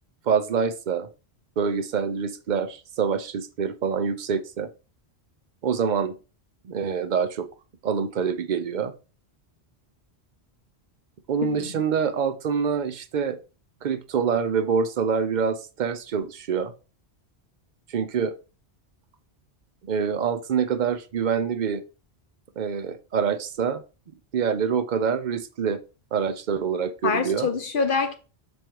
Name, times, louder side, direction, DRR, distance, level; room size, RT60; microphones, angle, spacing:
voice 1, 0.3-1.1 1.6-4.7 5.6-6.2 6.6-7.5 7.8-8.9 11.3-13.4 13.8-16.7 17.9-18.3 19.8-21.8 22.6-23.8 24.3-25.8 26.1-27.5, right 6 dB, 50° right, 0.7 m, -26 dB
voice 2, 11.4-11.8 27.0-28.2, left 5 dB, 55° left, 0.9 m, -25 dB
7.2 x 3.2 x 4.5 m
omnidirectional pair, 1.1 m